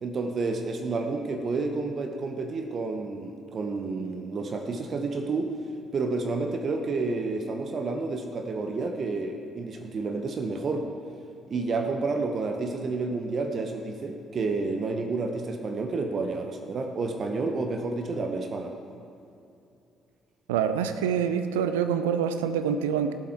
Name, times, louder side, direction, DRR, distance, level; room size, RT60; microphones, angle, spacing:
voice 1, 0.0-5.5 5.9-10.9 11.5-18.7, right 3 dB, 45° right, 5 dB, 0.9 m, -30 dB
voice 2, 20.5-23.1, right 7 dB, 80° right, 9 dB, 0.5 m, -26 dB
17.0 x 7.6 x 4.5 m, 2.6 s
figure-of-eight pair, 45°, 0 cm